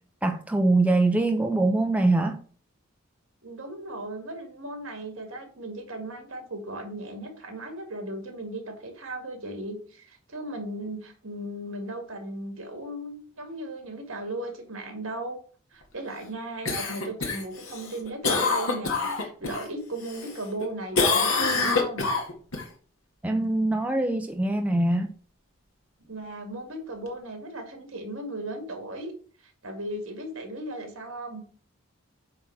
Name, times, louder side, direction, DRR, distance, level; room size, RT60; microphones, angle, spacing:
voice 1, 0.2-2.4 23.2-25.1, right 2 dB, 5° right, 0.5 m, -23 dB
voice 2, 3.4-15.4 15.7-22.1 26.1-29.1 29.4-31.4, right 1 dB, 65° right, 2.1 m, -36 dB
Cough, 16.6-19.6 20.0-20.6 20.9-22.6 27.1-27.2, left 4 dB, 75° left, 1.8 m, -26 dB
8.7 x 3.6 x 5.8 m
head